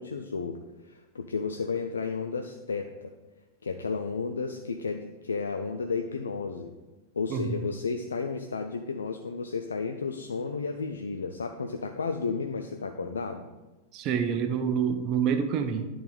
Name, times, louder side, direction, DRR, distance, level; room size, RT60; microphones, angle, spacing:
voice 1, 0.0-3.1 3.6-6.7 7.1-13.5, left 4 dB, 70° left, 5 dB, 0.4 m, -33 dB
voice 2, 7.3-7.7 13.9-15.9, right 7 dB, 40° right, 8 dB, 0.5 m, -27 dB
10.5 x 3.9 x 3.2 m, 1.2 s
figure-of-eight pair, 90°, 0 cm